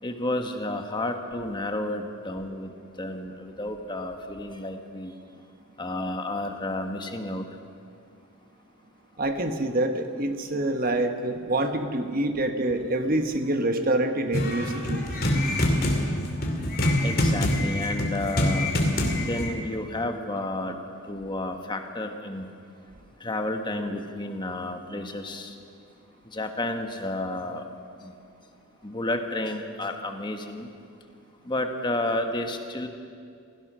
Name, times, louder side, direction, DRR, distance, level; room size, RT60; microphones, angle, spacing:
voice 1, 0.0-2.7 3.0-5.1 5.8-7.5 17.0-18.7 19.2-20.8 21.1-22.5 23.2-25.5 26.3-27.6 28.0-28.1 28.8-30.7 31.5-32.9, left 1 dB, 20° left, 5 dB, 1.3 m, -31 dB
voice 2, 9.2-15.0, right 1 dB, 40° right, 6 dB, 1.2 m, -26 dB
sound 1, 14.3-19.5, left 1 dB, 45° left, 2.6 m, -25 dB
27.5 x 17.0 x 6.2 m, 2.3 s
head